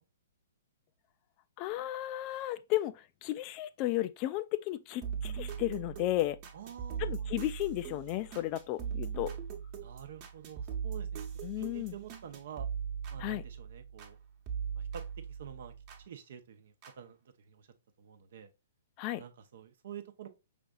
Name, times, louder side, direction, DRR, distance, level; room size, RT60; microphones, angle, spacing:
voice 1, 1.6-6.4 7.0-9.3 11.4-11.9 13.2-13.4 19.0-19.2, left 15 dB, 35° left, 0.3 m, -34 dB
sound 1, 5.0-14.2 14.5-16.0 16.8-16.9, right 7 dB, 40° right, 1.0 m, -40 dB
voice 2, 6.5-7.4 9.8-11.3 11.6-12.7 13.1-14.2 14.8-17.7 18.0-18.5 19.2-20.3, right 8 dB, 60° right, 0.7 m, -48 dB
5.1 x 3.3 x 2.3 m
figure-of-eight pair, 120°, 0 cm